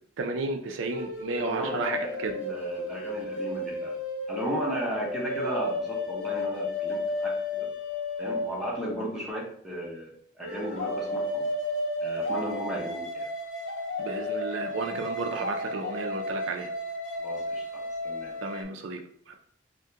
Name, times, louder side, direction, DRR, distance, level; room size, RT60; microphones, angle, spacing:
voice 1, 0.2-2.4 14.0-16.7 18.4-19.0 19.3-19.4, right 3 dB, 85° right, 4 dB, 0.4 m, -32 dB
sound 1, 0.9-9.3 10.4-18.6, left 1 dB, 80° left, 0.5 m, -33 dB
voice 2, 1.4-4.0 4.3-7.7 8.2-11.5 12.0-13.3 17.2-18.3, equal, ahead, -5 dB, 0.7 m, -35 dB
3.4 x 2.1 x 2.7 m, 0.62 s
head